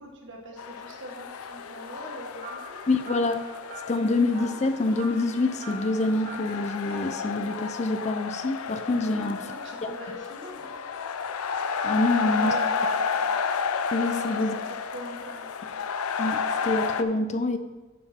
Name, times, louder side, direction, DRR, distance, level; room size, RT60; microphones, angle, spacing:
voice 1, 0.0-2.8 9.1-10.8 12.1-13.4 13.8-14.7 14.9-15.8, equal, 55° right, 1 dB, 1.7 m, -42 dB
sound 1, 0.6-17.0, left 5 dB, 85° left, 0.5 m, -31 dB
sound 2, 2.4-7.2, right 1 dB, 35° right, 1.0 m, -43 dB
voice 2, 2.9-3.4 3.9-9.4 9.8-9.9 11.8-12.5 13.9-14.5 16.2-17.6, left 2 dB, 30° left, 9 dB, 0.4 m, -26 dB
10.0 x 5.8 x 4.4 m, 1.2 s
head